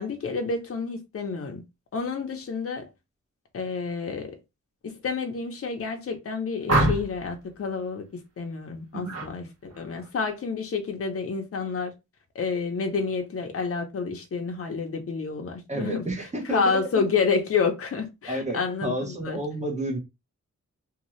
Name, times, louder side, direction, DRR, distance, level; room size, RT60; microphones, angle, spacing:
voice 1, 0.0-1.6 1.9-2.9 3.5-4.4 4.8-11.9 12.3-19.4, left 5 dB, 50° left, 0.7 m, -29 dB
sound 1, 6.7-7.3 9.0-9.3 9.7-10.1, right 1 dB, 55° right, 1.1 m, -25 dB
voice 2, 15.7-16.8 18.3-20.0, right 1 dB, 25° right, 0.9 m, -30 dB
2.7 x 2.3 x 3.0 m
wide cardioid pair, 100°, 30 cm